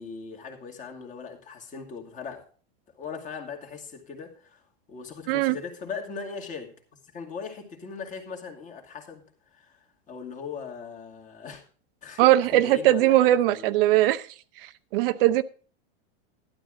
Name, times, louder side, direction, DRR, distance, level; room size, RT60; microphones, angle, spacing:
voice 1, 0.0-2.4 3.0-4.6 4.9-6.7 7.1-9.2 9.5-11.6 12.0-13.8, left 5 dB, 25° left, 2.4 m, -39 dB
voice 2, 12.2-14.2 14.6-15.4, right 14 dB, 65° right, 0.8 m, -20 dB
12.5 x 11.5 x 3.8 m
supercardioid pair, 150°, 31 cm